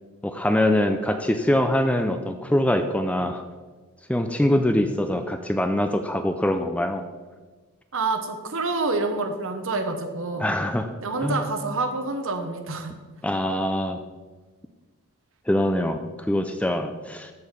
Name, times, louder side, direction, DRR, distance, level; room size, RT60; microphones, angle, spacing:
voice 1, 0.2-3.4 4.1-7.0 10.4-10.9 11.2-11.4 13.2-14.0 15.5-17.3, left 1 dB, 5° left, 7 dB, 0.4 m, -23 dB
voice 2, 7.9-10.5 11.0-12.9, right 3 dB, 60° right, 7 dB, 1.0 m, -27 dB
13.5 x 4.7 x 5.2 m, 1.3 s
head